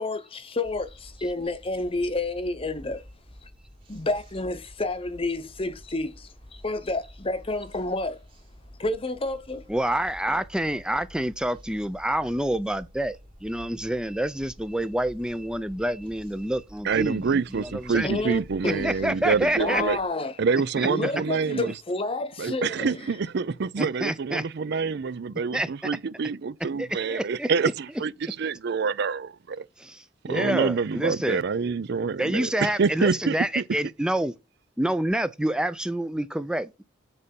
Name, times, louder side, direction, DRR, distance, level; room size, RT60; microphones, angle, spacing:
voice 1, 0.0-3.0 3.4-3.5 3.9-8.2 8.8-9.7 17.9-18.9 19.6-20.4 20.9-23.1, left 2 dB, 30° left, 0.8 m, -30 dB
sound 1, 0.6-20.1, equal, 25° right, 1.6 m, -49 dB
voice 2, 9.7-18.1 18.6-19.8 20.8-21.1 23.8-24.5 25.5-25.7 26.8-27.7 29.8-31.4 32.2-34.3 34.8-36.8, right 1 dB, 5° right, 0.5 m, -28 dB
voice 3, 16.8-20.0 20.4-21.7 22.4-29.7 30.2-33.6, right 5 dB, 55° right, 0.4 m, -27 dB
8.8 x 4.1 x 5.3 m
head